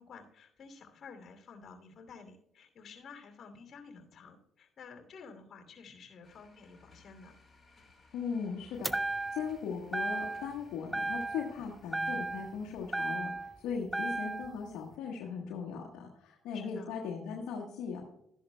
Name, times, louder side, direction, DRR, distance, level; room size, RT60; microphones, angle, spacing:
voice 1, 0.0-7.3 16.5-17.0, left 5 dB, 55° left, 4 dB, 2.7 m, -52 dB
sound 1, 6.2-13.7, left 3 dB, 25° left, 4.4 m, -63 dB
voice 2, 8.1-18.0, left 6 dB, 75° left, -2 dB, 1.3 m, -38 dB
sound 2, 8.8-9.6 9.9-10.6 10.9-11.6 11.9-13.6 13.9-14.5, right 2 dB, 5° right, 0.5 m, -35 dB
13.0 x 10.5 x 2.2 m, 0.78 s
supercardioid pair, 60°, 0 cm